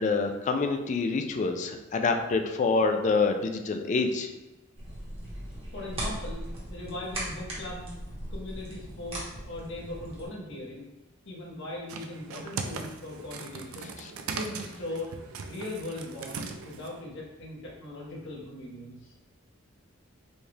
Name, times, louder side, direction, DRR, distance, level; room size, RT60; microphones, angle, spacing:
voice 1, 0.0-4.3 14.0-14.1, left 4 dB, 35° left, 6 dB, 0.3 m, -26 dB
sound 1, 4.8-10.3, right 1 dB, 30° right, 1.1 m, -38 dB
voice 2, 5.7-7.9 8.3-10.9 11.2-13.9 14.3-15.1 15.5-19.1, left 1 dB, 65° left, -3 dB, 1.0 m, -39 dB
sound 2, 11.9-17.0, right 5 dB, 80° right, 0.4 m, -39 dB
4.3 x 2.3 x 3.3 m, 1.0 s
head